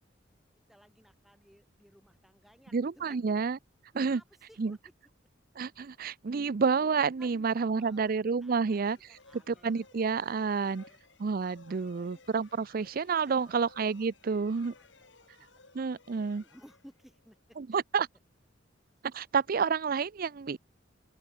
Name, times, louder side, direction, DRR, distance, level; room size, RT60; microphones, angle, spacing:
voice 1, 0.7-3.4 3.9-4.8 7.2-8.1 8.4-9.7 10.2-11.0 11.7-12.2 13.2-13.7 14.2-15.5 16.3-17.6, equal, ahead, 7.5 m, -59 dB
voice 2, 2.7-3.6 3.9-4.2 4.6-4.8 5.6-9.0 9.3-10.8 11.2-14.7 15.7-16.4 17.6-18.1 19.0-20.6, right 5 dB, 50° right, 0.5 m, -29 dB
sound 1, 8.6-17.4, left 4 dB, 85° left, 5.9 m, -59 dB
open air
head